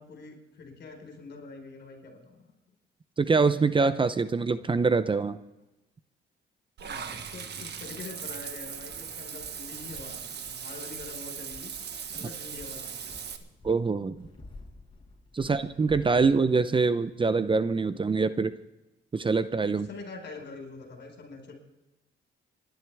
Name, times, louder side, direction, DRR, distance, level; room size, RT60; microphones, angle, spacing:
voice 1, 0.0-2.5 6.8-11.7 12.1-13.2 15.4-15.6 19.7-21.5, left 3 dB, 60° left, 3 dB, 4.8 m, -45 dB
voice 2, 3.2-5.4 13.6-14.3 15.3-18.5 19.1-19.9, right 4 dB, 25° right, 12 dB, 0.7 m, -24 dB
Water / Bathtub (filling or washing), 6.8-13.4, right 7 dB, 60° right, 1.5 m, -39 dB
sound 1, 8.9-16.5, left 2 dB, 25° left, 5.8 m, -51 dB
28.0 x 11.5 x 3.5 m, 0.98 s
cardioid pair, 90°, 20 cm